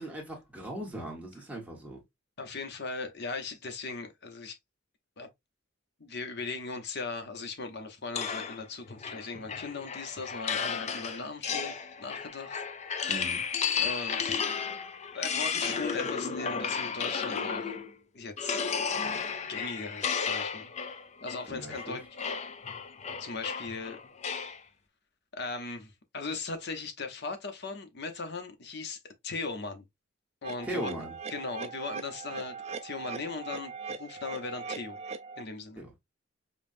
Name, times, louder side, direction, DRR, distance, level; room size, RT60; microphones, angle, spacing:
voice 1, 0.0-2.0 13.1-13.4 21.5-22.0 30.6-31.1 35.8-35.9, right 1 dB, 5° right, 1.3 m, -38 dB
voice 2, 2.4-4.6 5.2-5.3 6.0-11.7 12.0-12.6 13.8-14.7 15.1-17.8 18.1-18.6 19.5-20.7 21.2-22.0 23.2-24.0 24.4-24.5 25.3-29.9 30.4-30.9 31.3-32.6 32.8-35.0 35.4-35.8, left 4 dB, 55° left, 0.8 m, -38 dB
sound 1, 8.1-17.9 18.4-24.6, left 6 dB, 35° left, 0.4 m, -33 dB
sound 2, 30.4-35.4, right 5 dB, 35° right, 0.4 m, -40 dB
5.2 x 2.3 x 2.6 m
head